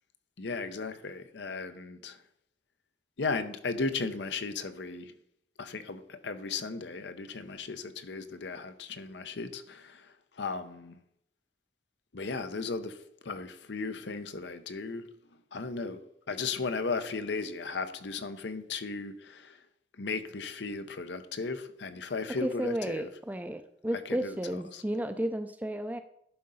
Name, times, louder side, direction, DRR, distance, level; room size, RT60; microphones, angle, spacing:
voice 1, 0.4-2.2 3.2-5.1 5.6-11.0 12.1-15.0 15.5-16.0 16.3-19.6 20.0-23.1 24.1-24.8, left 4 dB, 70° left, 0.7 m, -36 dB
voice 2, 22.4-26.0, right 1 dB, 10° right, 0.4 m, -33 dB
11.0 x 3.8 x 5.5 m
head